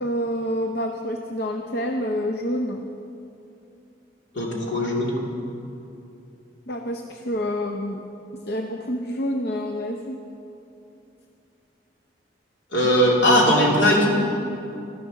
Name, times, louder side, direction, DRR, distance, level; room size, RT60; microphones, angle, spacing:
voice 1, 0.0-2.8 6.7-8.0 8.5-10.2, equal, 55° left, 4 dB, 0.6 m, -27 dB
voice 2, 4.3-5.1 12.7-14.1, equal, 75° left, -3 dB, 2.8 m, -19 dB
13.0 x 11.0 x 6.4 m, 2.8 s
head